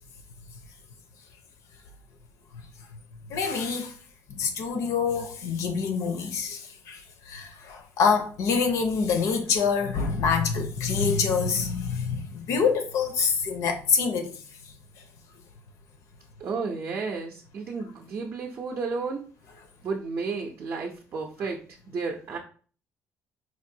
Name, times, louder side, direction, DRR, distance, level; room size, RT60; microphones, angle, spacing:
voice 1, 3.3-3.9 4.4-6.6 6.9-7.0 7.3-14.3, left 5 dB, 75° left, 0.7 m, -26 dB
voice 2, 16.4-19.2 19.8-22.4, right 4 dB, 40° right, 0.5 m, -32 dB
4.4 x 2.6 x 2.7 m
cardioid pair, 145°, 5 cm